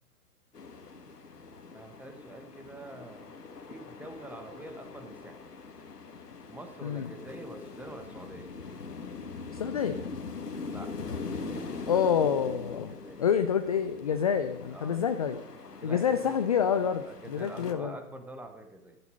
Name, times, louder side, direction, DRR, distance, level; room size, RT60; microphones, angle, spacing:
sound 1, 0.5-17.7, left 4 dB, 90° left, 1.9 m, -42 dB
voice 1, 1.7-3.3 3.7-5.4 6.5-8.5 10.7-11.7 12.9-13.6 14.7-15.1 15.7-16.4 17.0-19.0, right 2 dB, 5° right, 7 dB, 1.0 m, -46 dB
voice 2, 9.5-10.1 11.9-15.4 15.8-17.9, left 7 dB, 25° left, 9 dB, 0.4 m, -28 dB
13.5 x 11.0 x 6.4 m, 0.89 s
hypercardioid pair, 130°, 46 cm